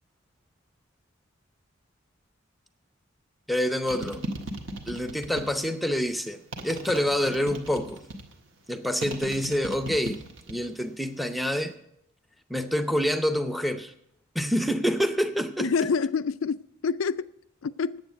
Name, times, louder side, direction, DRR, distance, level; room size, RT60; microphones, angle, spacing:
voice 1, 3.5-4.3 4.9-6.4 6.6-8.0 8.7-10.2 10.5-11.7 12.5-13.9 14.3-15.7, equal, ahead, 0.6 m, -27 dB
sound 1, 3.9-5.7 6.5-8.3 9.0-10.7 11.0-11.6, right 2 dB, 70° right, 1.6 m, -37 dB
voice 2, 15.6-17.3 17.6-18.0, left 5 dB, 85° left, 0.4 m, -27 dB
9.4 x 7.9 x 9.2 m
head